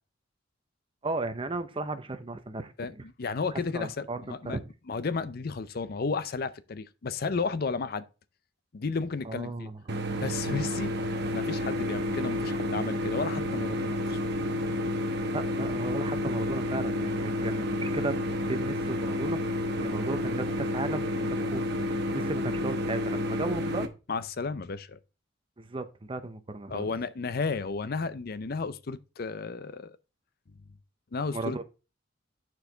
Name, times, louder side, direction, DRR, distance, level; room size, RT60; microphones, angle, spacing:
voice 1, 1.0-3.0 3.7-4.6 9.2-9.8 15.3-18.2 18.5-23.9 25.6-26.9 31.3-31.6, right 2 dB, 25° right, 0.7 m, -35 dB
voice 2, 2.8-4.6 4.9-8.0 8.7-9.7 10.2-14.2 24.1-25.0 26.7-30.0 31.1-31.6, left 4 dB, 50° left, 0.5 m, -33 dB
sound 1, 9.9-23.9, left 1 dB, 55° right, 1.0 m, -30 dB
9.3 x 4.6 x 3.8 m
head